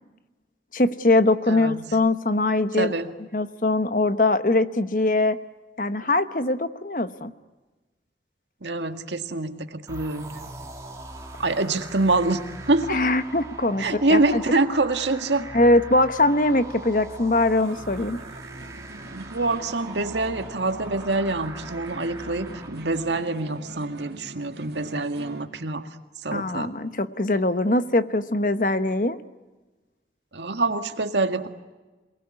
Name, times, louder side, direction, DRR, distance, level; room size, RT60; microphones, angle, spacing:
voice 1, 0.7-2.9 3.3-5.4 5.8-7.3 12.9-14.4 15.5-18.2 26.3-29.2, left 2 dB, 50° left, 11 dB, 1.1 m, -22 dB
voice 2, 1.5-2.0 2.7-3.1 8.6-10.5 11.4-13.0 13.8-15.5 19.1-25.9 26.2-26.7 30.3-31.5, right 2 dB, 90° right, 7 dB, 1.9 m, -25 dB
sound 1, 9.9-23.4, right 2 dB, 20° right, 2.6 m, -41 dB
sound 2, 17.6-25.5, right 2 dB, 70° right, 2.1 m, -44 dB
28.0 x 19.5 x 9.7 m, 1.2 s
head